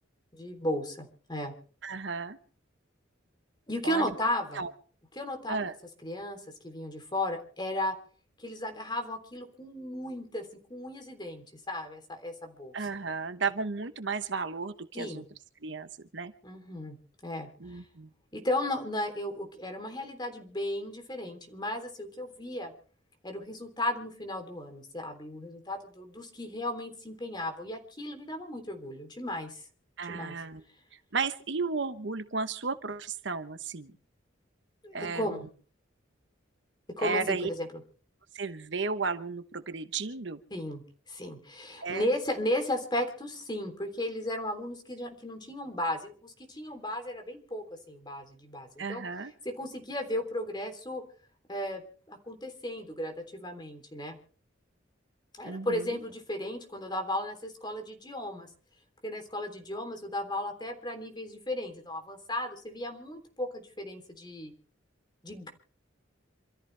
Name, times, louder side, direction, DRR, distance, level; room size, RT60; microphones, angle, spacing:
voice 1, 0.3-1.5 3.7-4.6 5.1-5.7 6.0-7.9 8.4-12.9 14.9-15.2 16.4-17.0 17.2-17.8 18.3-22.7 23.2-29.6 30.1-30.4 34.8-35.5 37.0-37.8 40.5-49.0 49.4-51.0 51.5-51.8 52.1-54.2 55.3-58.5 59.0-64.5 65.2-65.5, left 1 dB, 20° left, 5 dB, 3.4 m, -35 dB
voice 2, 1.8-2.4 3.8-4.1 4.5-4.7 5.5-5.8 12.7-15.2 15.6-16.3 17.6-18.1 30.0-30.6 31.1-33.9 34.9-35.4 37.0-37.5 38.3-40.4 41.8-42.1 48.8-49.3 55.4-56.0, right 4 dB, 65° right, 11 dB, 1.1 m, -34 dB
27.5 x 14.0 x 3.4 m, 0.42 s
head